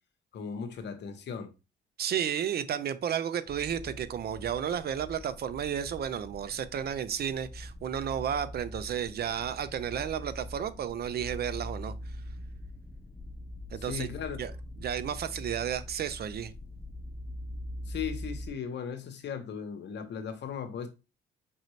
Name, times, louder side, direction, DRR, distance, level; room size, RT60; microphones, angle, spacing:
voice 1, 0.3-1.5 13.8-14.4 17.9-20.9, left 7 dB, 60° left, 1.0 m, -37 dB
voice 2, 2.0-11.9 13.7-14.1 14.4-14.5 14.8-16.5, right 9 dB, 55° right, 0.5 m, -32 dB
sound 1, 3.5-18.5, left 1 dB, 10° left, 0.4 m, -43 dB
5.5 x 2.6 x 3.1 m
cardioid pair, 90°, 20 cm